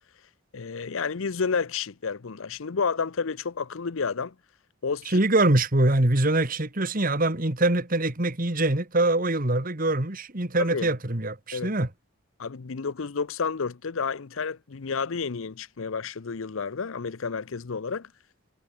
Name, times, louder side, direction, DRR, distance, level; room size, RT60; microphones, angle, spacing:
voice 1, 0.5-4.3 4.8-5.2 10.6-10.9 11.5-11.7 12.4-18.1, left 5 dB, 70° left, 0.7 m, -30 dB
voice 2, 5.1-11.9, right 2 dB, 40° right, 2.1 m, -24 dB
head